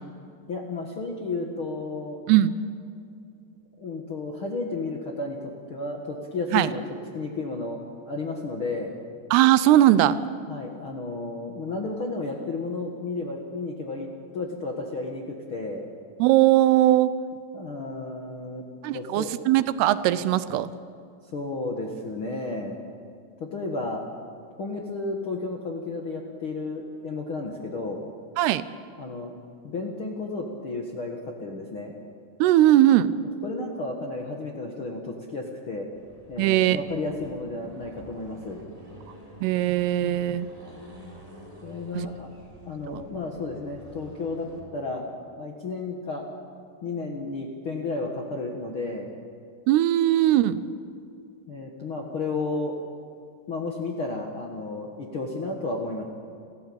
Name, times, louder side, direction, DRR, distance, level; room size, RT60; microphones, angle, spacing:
voice 1, 0.5-2.2 3.8-6.8 7.1-8.9 10.5-14.1 14.3-15.9 17.5-18.6 18.9-19.3 21.3-22.8 23.4-24.0 24.6-28.0 29.0-29.4 29.6-31.9 33.4-35.9 36.3-38.6 41.6-42.3 42.7-45.0 45.4-46.2 46.8-49.1 51.5-52.8 53.5-56.1, left 3 dB, 65° left, 1 dB, 1.3 m, -32 dB
voice 2, 9.3-10.2 16.2-17.1 18.8-20.7 28.4-28.6 32.4-33.1 36.4-36.8 39.4-40.5 42.0-42.1 42.9-43.0 49.7-50.6, right 13 dB, 80° right, 14 dB, 2.6 m, -19 dB
Accelerating revving vroom, 35.9-44.7, equal, 10° right, 3.6 m, -48 dB
30.0 x 14.0 x 8.6 m, 2.4 s
omnidirectional pair, 4.9 m